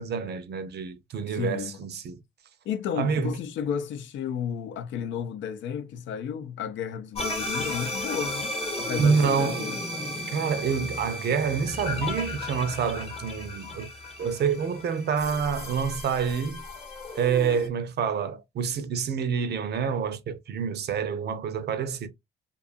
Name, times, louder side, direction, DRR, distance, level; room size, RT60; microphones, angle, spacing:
voice 1, 0.0-2.2 3.0-3.3 9.0-9.7 10.3-13.9 14.2-16.6 17.1-22.1, right 6 dB, 55° right, 0.6 m, -27 dB
voice 2, 1.3-1.7 2.7-9.8, left 8 dB, 70° left, 0.5 m, -33 dB
sound 1, 7.1-17.7, left 1 dB, 30° left, 0.9 m, -34 dB
2.6 x 2.4 x 2.4 m
cardioid pair, 90°, 20 cm